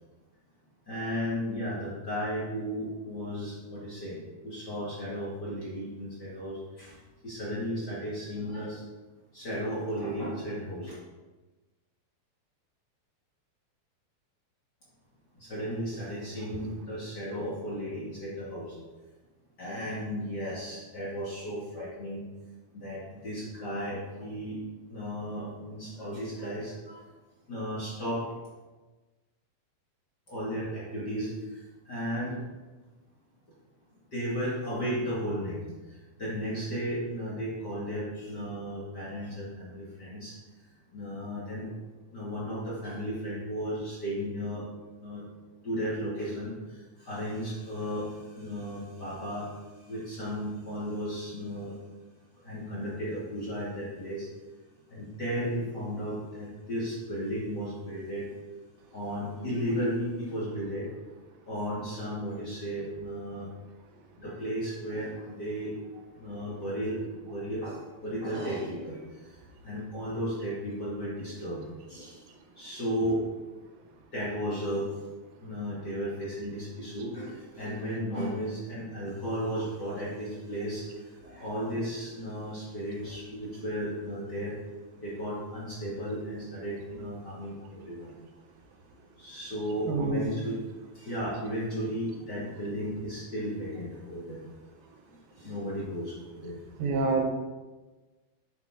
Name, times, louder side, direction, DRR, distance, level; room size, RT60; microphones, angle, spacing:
voice 1, 0.9-7.0 7.2-8.8 9.3-11.0 15.4-18.8 19.6-22.2 22.7-24.6 24.9-27.0 27.5-28.3 30.3-32.4 34.1-35.6 35.9-40.3 40.9-41.7 42.1-44.7 45.0-45.2 45.6-49.5 49.8-51.7 52.4-54.3 54.9-58.3 58.9-60.9 61.5-63.5 64.2-65.7 66.2-69.3 69.6-72.2 72.6-73.3 74.1-74.9 75.4-80.9 81.2-84.5 84.9-88.1 89.2-90.6 90.9-94.4 95.4-96.1 96.4-96.6, equal, 35° left, -7 dB, 2.0 m, -34 dB
voice 2, 89.9-90.3 96.8-97.2, right 3 dB, 80° right, 3 dB, 2.9 m, -26 dB
9.8 x 7.3 x 3.7 m, 1.2 s
omnidirectional pair, 4.3 m